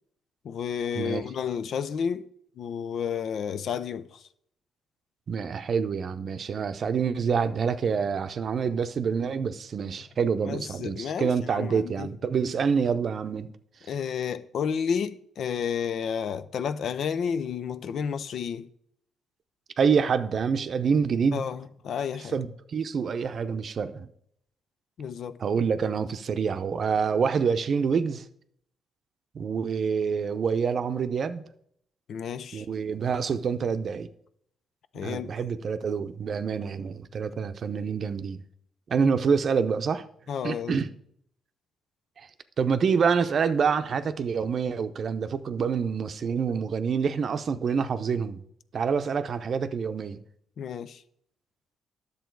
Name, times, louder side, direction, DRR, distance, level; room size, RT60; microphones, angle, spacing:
voice 1, 0.4-2.3 2.6-4.2 6.5-6.6 10.4-12.1 13.9-18.7 21.3-22.4 25.0-25.4 32.1-32.7 34.9-35.3 40.3-40.8 50.6-51.0, left 7 dB, 65° left, 0.5 m, -31 dB
voice 2, 5.3-13.5 19.8-21.5 22.3-24.1 25.4-28.2 29.3-31.4 32.5-34.1 34.9-38.4 38.9-40.1 40.4-40.9 42.2-42.3 42.6-48.4 48.7-50.2, right 6 dB, 50° right, 0.6 m, -27 dB
10.5 x 7.0 x 4.6 m
cardioid pair, 90°, 0 cm